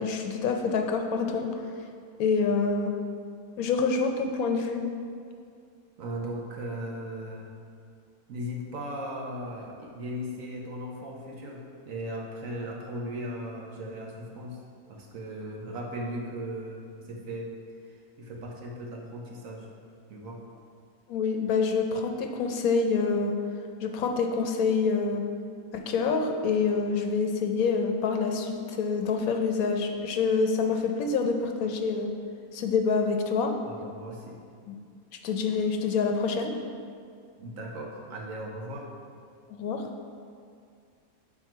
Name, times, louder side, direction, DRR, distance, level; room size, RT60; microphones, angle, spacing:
voice 1, 0.0-1.5 2.2-2.9 3.6-4.8 21.1-23.3 23.8-25.2 25.7-32.1 32.5-33.5 35.2-36.5 39.5-39.8, left 4 dB, 80° left, 4 dB, 1.1 m, -26 dB
voice 2, 6.0-7.5 8.3-14.6 14.9-17.5 18.2-19.7 20.1-20.4 33.6-34.4 37.4-38.9, equal, 70° right, -1 dB, 1.3 m, -37 dB
7.4 x 4.1 x 4.5 m, 2.2 s
omnidirectional pair, 1.5 m